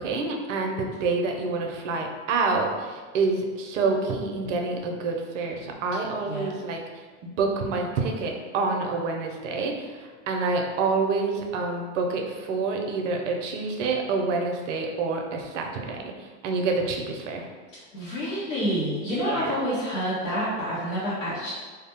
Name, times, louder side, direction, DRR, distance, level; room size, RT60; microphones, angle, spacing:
voice 1, 0.0-6.8 7.4-17.5 19.3-19.5, right 4 dB, 75° right, 2 dB, 0.6 m, -27 dB
voice 2, 17.7-21.5, equal, 85° left, -10 dB, 0.8 m, -28 dB
2.3 x 2.0 x 2.8 m, 1.5 s
hypercardioid pair, 95°, 37 cm